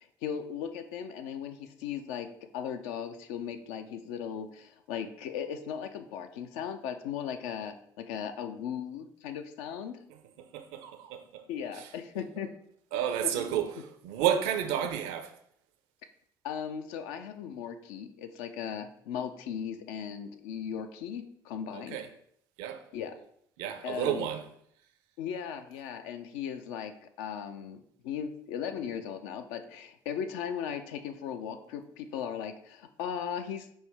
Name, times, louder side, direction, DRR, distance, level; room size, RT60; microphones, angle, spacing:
voice 1, 0.0-2.3 2.5-10.0 11.5-12.5 12.9-13.0 13.3-13.6 16.4-22.0 22.9-23.1 23.8-24.3 25.2-33.7, left 8 dB, 70° left, 0.4 m, -37 dB
voice 2, 10.4-11.4 11.7-11.9 12.9-15.3 21.7-22.1 22.6-22.8 23.6-24.5, right 9 dB, 70° right, 0.4 m, -31 dB
5.3 x 2.1 x 3.3 m
figure-of-eight pair, 55°, 11 cm